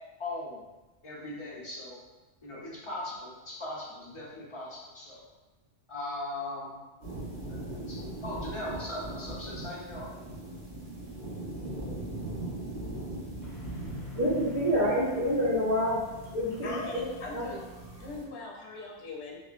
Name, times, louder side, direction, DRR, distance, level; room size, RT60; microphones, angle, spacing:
voice 1, 0.2-0.6 1.0-2.0 2.4-5.2 5.9-6.8 7.5-10.1, left 1 dB, 30° left, -6 dB, 0.7 m, -39 dB
sound 1, 7.0-18.3, right 1 dB, 50° right, 1.3 m, -40 dB
voice 2, 13.4-16.0 16.3-16.8 17.3-17.4, equal, 30° right, -10 dB, 1.2 m, -28 dB
voice 3, 16.6-17.7 18.0-19.4, left 3 dB, 75° left, -2 dB, 0.9 m, -40 dB
2.9 x 2.8 x 2.4 m, 1.1 s
omnidirectional pair, 1.2 m